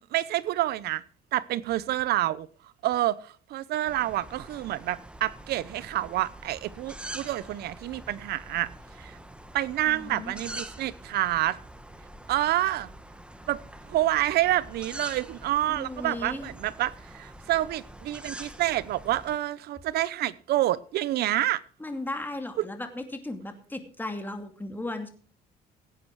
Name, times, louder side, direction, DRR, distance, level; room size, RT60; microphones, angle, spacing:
voice 1, 0.1-1.0 1.3-2.5 2.8-8.7 9.0-9.2 9.5-11.6 12.3-12.9 13.5-13.6 13.9-21.6 22.6-22.7, right 14 dB, 70° right, 0.8 m, -28 dB
sound 1, 3.8-19.4, right 1 dB, 5° right, 1.3 m, -45 dB
voice 2, 9.9-10.3 15.7-16.5 21.8-25.1, left 2 dB, 10° left, 2.4 m, -36 dB
16.5 x 9.1 x 4.7 m
cardioid pair, 110°, 17 cm